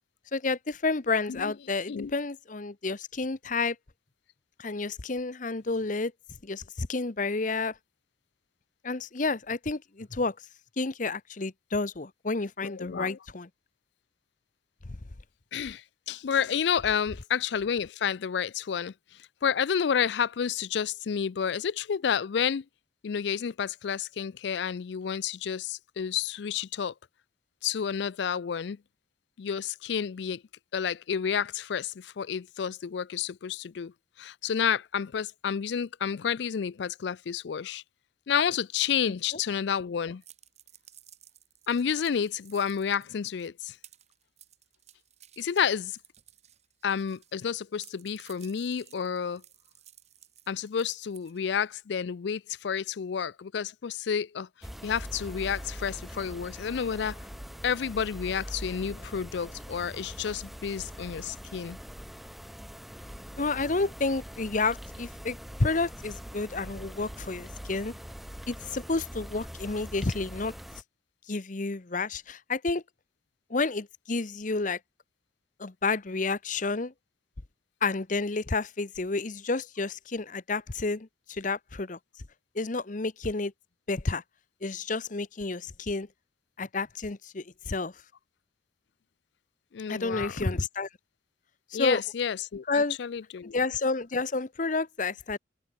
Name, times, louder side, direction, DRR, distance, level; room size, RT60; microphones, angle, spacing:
voice 1, 0.3-3.8 4.6-6.1 6.4-7.7 8.8-10.3 10.8-13.5 39.1-39.2 63.4-67.9 68.5-70.5 71.3-72.8 73.5-74.8 75.6-76.9 77.8-82.0 82.5-83.5 83.9-84.2 84.6-86.1 86.6-87.9 89.9-90.9 91.7-92.0 92.7-93.0 93.5-95.4, left 3 dB, 40° left, 0.8 m, -30 dB
voice 2, 12.6-13.2 15.5-18.9 19.4-22.6 23.0-26.9 27.6-28.8 29.4-30.4 30.7-33.9 34.2-37.8 38.3-40.2 41.7-43.8 45.4-45.9 46.8-49.4 50.5-54.5 54.8-57.2 57.6-61.8 89.7-90.5 91.7-93.6, left 7 dB, 65° left, 0.4 m, -30 dB
sound 1, 40.2-47.4 47.7-51.7, right 11 dB, 35° right, 4.2 m, -56 dB
sound 2, 54.6-70.8, equal, ahead, 0.5 m, -43 dB
open air
head